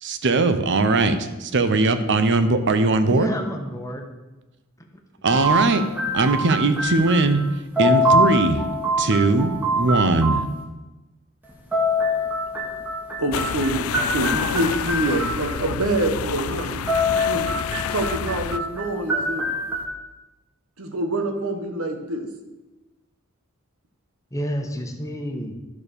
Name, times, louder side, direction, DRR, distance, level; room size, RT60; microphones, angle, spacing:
voice 1, 0.0-3.3 5.2-5.8 6.1-7.4 7.8-8.6 9.0-10.4, right 3 dB, 60° right, 9 dB, 0.8 m, -20 dB
voice 2, 3.1-4.1 4.8-4.9 24.3-25.5, equal, 15° left, 3 dB, 1.1 m, -30 dB
sound 1, 5.3-7.5 7.8-10.5 11.5-15.7 16.6-19.8, equal, 10° right, 1.5 m, -24 dB
voice 3, 13.2-17.5 17.9-19.5 20.8-22.3, right 1 dB, 85° right, 6 dB, 1.3 m, -26 dB
sound 2, 13.3-18.6, left 8 dB, 85° left, 0.4 m, -29 dB
11.5 x 4.3 x 6.8 m, 1.1 s
head